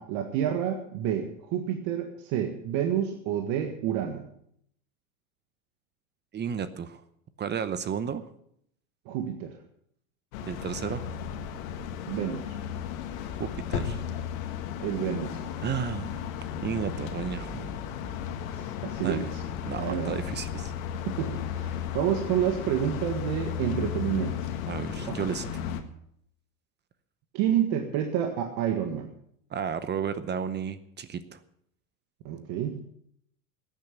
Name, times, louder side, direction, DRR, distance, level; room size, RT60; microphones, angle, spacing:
voice 1, 0.0-4.3 9.1-9.5 12.1-12.5 14.8-15.4 18.8-19.4 19.8-20.1 21.1-24.4 25.0-25.1 27.3-29.1 32.3-32.8, right 9 dB, 55° right, 4 dB, 1.7 m, -29 dB
voice 2, 6.3-7.0 7.4-8.3 10.4-11.1 13.4-14.0 15.6-16.2 16.6-17.7 19.0-19.3 19.7-20.7 24.7-25.6 29.5-31.4, right 7 dB, 25° right, 13 dB, 0.8 m, -33 dB
sound 1, 10.3-25.8, left 8 dB, 70° left, 1.8 m, -34 dB
15.0 x 9.2 x 6.6 m, 0.71 s
supercardioid pair, 110°, 42 cm